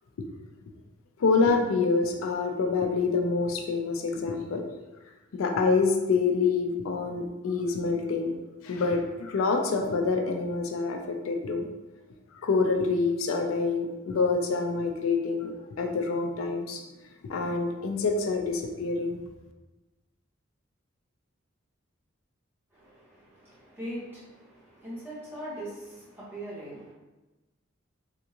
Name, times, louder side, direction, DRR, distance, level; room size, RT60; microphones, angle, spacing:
voice 1, 1.2-4.6 5.3-8.3 8.6-11.7 12.4-15.5 15.8-16.8 17.2-19.2, left 4 dB, 85° left, 3 dB, 0.4 m, -26 dB
voice 2, 22.7-26.9, right 1 dB, 10° right, -10 dB, 1.2 m, -41 dB
3.5 x 2.6 x 2.8 m, 1.1 s
head